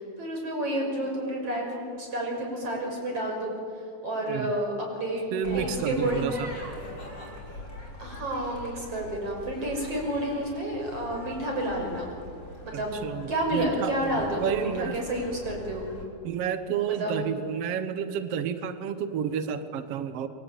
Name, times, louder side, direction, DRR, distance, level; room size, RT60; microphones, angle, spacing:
voice 1, 0.0-3.6 4.0-6.3 8.0-12.1 12.6-15.9 16.9-17.3, right 1 dB, 40° right, 1 dB, 6.9 m, -30 dB
voice 2, 5.3-6.5 13.0-15.0 16.2-20.3, right 8 dB, 80° right, 10 dB, 1.3 m, -30 dB
sound 1, 5.4-16.0, left 1 dB, 30° left, 6.4 m, -42 dB
27.5 x 23.0 x 8.9 m, 2.3 s
omnidirectional pair, 4.3 m